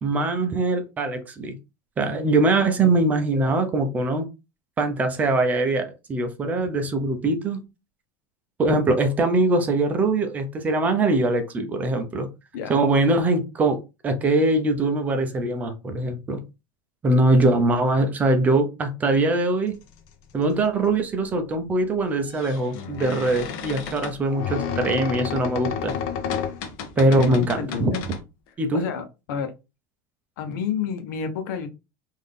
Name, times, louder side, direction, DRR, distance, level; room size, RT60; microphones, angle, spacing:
voice 1, 0.0-1.5 2.0-4.3 4.8-7.6 8.6-12.3 12.7-16.4 17.0-19.8 20.3-25.9 27.0-27.9 28.6-28.8, right 2 dB, 15° right, 6 dB, 0.5 m, -22 dB
voice 2, 2.6-3.0 12.5-12.8 27.0-28.0 28.7-29.5 30.4-31.7, left 7 dB, 85° left, 8 dB, 0.9 m, -30 dB
sound 1, 20.4-20.5 22.1-28.2, left 7 dB, 55° left, 0.7 m, -31 dB
3.9 x 2.6 x 3.3 m, 0.26 s
cardioid pair, 175°, 10 cm